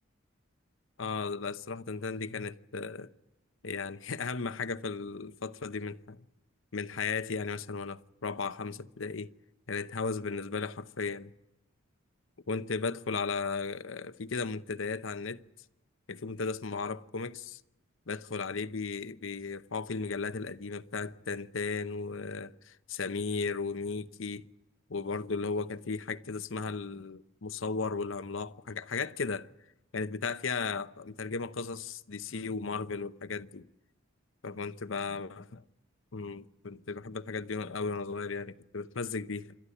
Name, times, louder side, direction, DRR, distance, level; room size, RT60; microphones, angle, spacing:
voice 1, 1.0-3.1 3.6-6.2 6.7-9.3 9.7-11.3 12.5-15.4 16.1-17.6 18.1-24.5 24.9-29.5 29.9-33.7 34.4-35.6 36.1-39.6, left 4 dB, 70° left, 0.8 m, -35 dB
27.5 x 13.0 x 9.8 m
head